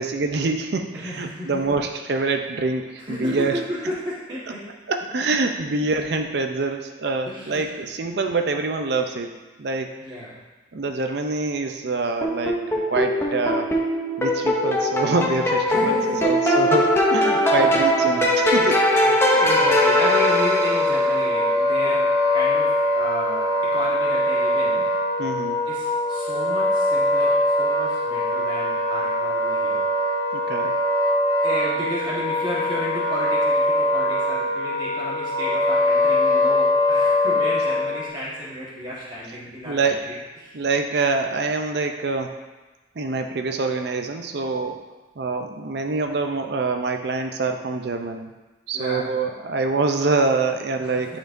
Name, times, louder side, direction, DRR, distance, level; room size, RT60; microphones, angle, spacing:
voice 1, 0.0-3.9 4.5-4.6 4.9-9.3 9.6-10.0 10.7-12.6 12.9-13.7 14.2-18.8 25.2-25.6 30.3-30.8 39.2-39.3 39.6-40.2 40.5-42.4 43.0-44.8 45.2-48.3 48.7-51.2, right 3 dB, 55° right, 5 dB, 0.5 m, -25 dB
voice 2, 0.9-1.8 3.0-4.8 5.7-5.8 7.3-7.8 10.0-10.4 15.6-16.2 17.6-17.7 18.1-18.3 18.6-24.9 25.7-29.8 31.4-40.5 44.6-44.7 48.7-49.1 50.8-51.2, equal, 25° right, -8 dB, 1.4 m, -33 dB
sound 1, 12.2-21.1, equal, 10° left, 0.6 m, -21 dB
Wind instrument woodwind instrument, 18.9-38.1, left 1 dB, 80° right, 1.7 m, -22 dB
10.5 x 4.4 x 2.6 m, 1.2 s
head